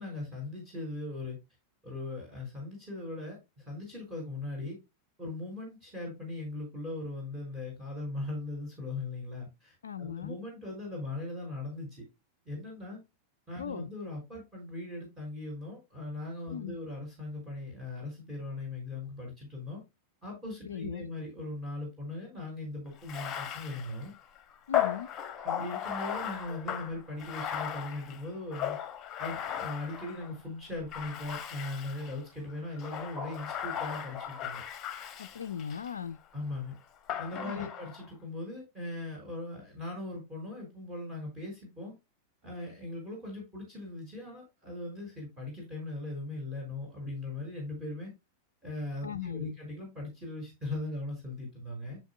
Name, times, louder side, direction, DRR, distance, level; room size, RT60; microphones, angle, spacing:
voice 1, 0.0-1.4 1.8-4.8 5.2-12.0 12.5-13.0 13.5-19.8 20.2-24.1 25.4-28.8 29.2-34.6 36.3-36.8 37.2-41.9 42.4-48.1 48.6-52.0, left 2 dB, 15° right, 5.5 m, -39 dB
voice 2, 9.8-10.4 13.6-13.9 16.5-16.8 20.6-21.1 24.7-25.1 35.2-36.2 37.5-37.7 49.0-49.6, left 8 dB, 70° left, 0.4 m, -38 dB
Bathtub (filling or washing), 23.0-30.4 30.9-32.2 32.8-35.9 37.1-38.1, left 10 dB, 25° left, 1.2 m, -36 dB
10.5 x 7.1 x 2.3 m
figure-of-eight pair, 90°, 0 cm